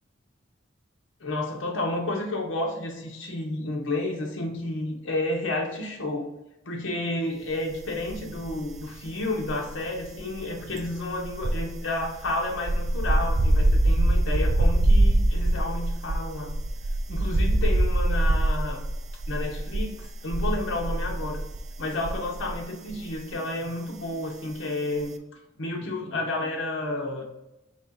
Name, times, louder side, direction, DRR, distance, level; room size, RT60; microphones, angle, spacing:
voice 1, 1.2-6.3 6.7-16.5 17.1-18.8 19.3-21.4 21.8-25.1 25.6-27.2, left 2 dB, 70° left, 0 dB, 0.7 m, -31 dB
sound 1, 8.0-8.8 9.1-22.6 22.9-23.1, right 1 dB, 35° right, 0.4 m, -24 dB
4.1 x 2.9 x 3.8 m, 0.93 s
head